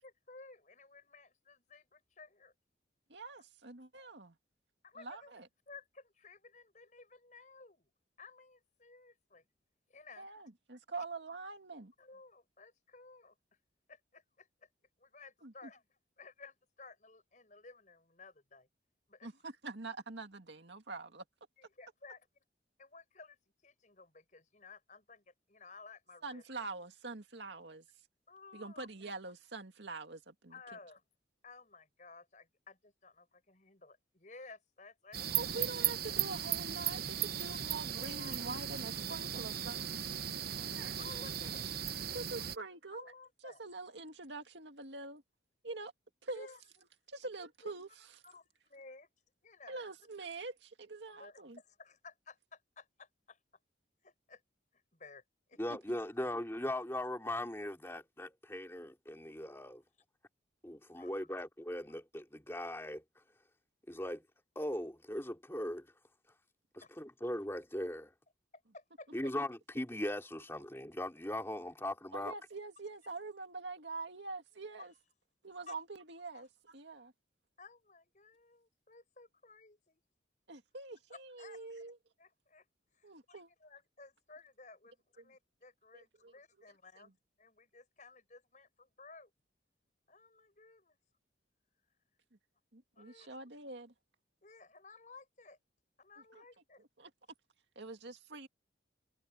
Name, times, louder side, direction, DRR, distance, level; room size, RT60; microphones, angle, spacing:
voice 1, 0.0-2.5 4.8-5.3 5.7-7.9 8.2-9.4 9.9-10.3 12.0-13.3 13.9-14.5 15.0-15.8 16.2-18.7 19.1-19.3 21.6-22.3 22.8-23.4 23.6-26.4 28.3-28.9 30.5-31.0 31.4-35.7 37.7-38.4 41.0-41.7 42.9-43.6 46.3-46.6 47.4-47.7 48.2-49.1 49.4-49.9 51.1-53.4 54.0-54.4 54.9-55.2 55.5-55.6 61.0-61.1 66.8-66.9 68.7-69.1 74.8-74.9 75.7-75.8 76.3-76.4 77.6-80.0 81.1-81.8 82.2-82.6 83.0-87.1 87.4-89.3 90.1-91.0 93.0-93.4 94.4-95.6 96.0-96.8, left 4 dB, 40° left, 6.2 m, -56 dB
voice 2, 3.1-4.4 5.0-5.5 10.2-11.9 15.4-15.7 19.2-21.2 26.2-27.9 28.5-30.5 35.3-39.8 40.8-41.0 42.1-43.0 43.4-45.2 45.6-45.9 46.2-46.5 47.1-48.2 49.7-51.6 72.1-74.9 75.4-77.1 80.5-82.0 83.0-83.5 85.2-85.3 85.9-86.3 87.0-87.1 92.7-93.9 96.3-96.4 97.0-97.1 97.8-98.5, right 3 dB, 70° right, 2.2 m, -45 dB
sound 1, 35.1-42.6, right 10 dB, 55° right, 0.9 m, -37 dB
voice 3, 55.6-59.8 60.6-63.0 63.9-64.2 64.5-65.9 66.7-68.1 69.1-72.3, left 1 dB, 15° left, 2.9 m, -39 dB
head